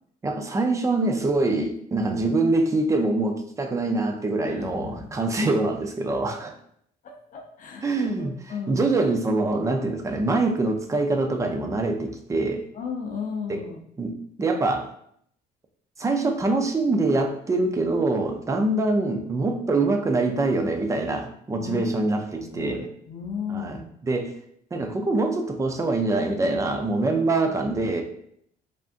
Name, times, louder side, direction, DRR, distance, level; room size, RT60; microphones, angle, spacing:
voice 1, 0.2-6.5 7.8-8.3 8.7-12.6 13.5-13.6 14.0-14.9 16.0-22.9 23.5-24.3 24.7-28.0, right 2 dB, 20° right, 5 dB, 0.4 m, -24 dB
voice 2, 4.4-5.1 7.0-8.8 12.7-13.8 21.6-21.8 22.3-23.8 27.4-27.6, left 6 dB, 50° left, 2 dB, 0.5 m, -35 dB
3.4 x 2.5 x 2.5 m, 0.67 s
cardioid pair, 110°, 17 cm